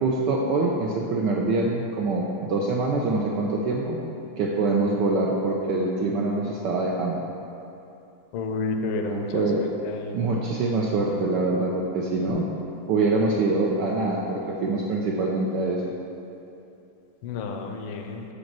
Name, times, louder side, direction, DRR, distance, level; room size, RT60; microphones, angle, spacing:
voice 1, 0.0-4.0 4.4-7.2 9.1-9.6 10.1-12.5 12.9-15.9, right 3 dB, 80° right, -2 dB, 1.0 m, -24 dB
voice 2, 8.3-10.2 17.2-18.3, left 3 dB, 80° left, 4 dB, 1.4 m, -31 dB
5.2 x 5.0 x 5.9 m, 2.7 s
omnidirectional pair, 2.4 m